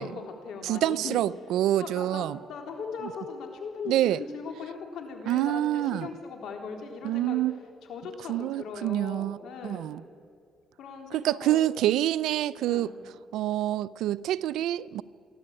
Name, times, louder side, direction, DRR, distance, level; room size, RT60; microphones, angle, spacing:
voice 1, 0.0-1.2 1.8-7.4 7.9-9.8 10.8-11.6 12.7-12.9, left 5 dB, 80° left, 3.8 m, -39 dB
voice 2, 0.6-2.4 3.9-4.2 5.3-6.1 7.0-7.5 8.3-9.4 9.6-10.0 11.1-12.9 13.3-15.0, right 13 dB, 90° right, 0.5 m, -27 dB
28.0 x 12.0 x 8.9 m
cardioid pair, 90°, 0 cm